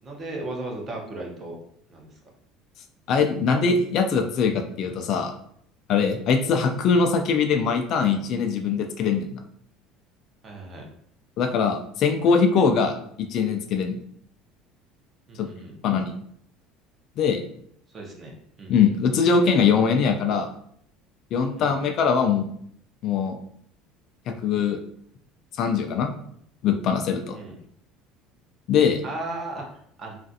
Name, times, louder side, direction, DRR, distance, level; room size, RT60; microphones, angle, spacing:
voice 1, 0.0-1.6 1.9-2.1 10.4-10.9 15.3-15.7 17.9-18.8 21.6-21.8 27.3-27.6 29.0-30.2, right 2 dB, 25° right, 0 dB, 0.6 m, -36 dB
voice 2, 3.1-5.3 5.9-9.4 11.4-13.9 15.4-15.5 15.8-16.1 17.2-17.4 18.7-20.5 21.3-22.4 23.0-23.4 24.3-24.8 25.6-26.1 26.6-27.4 28.7-29.0, left 5 dB, 45° left, 5 dB, 0.3 m, -22 dB
3.1 x 2.4 x 2.6 m, 0.68 s
cardioid pair, 155°, 0 cm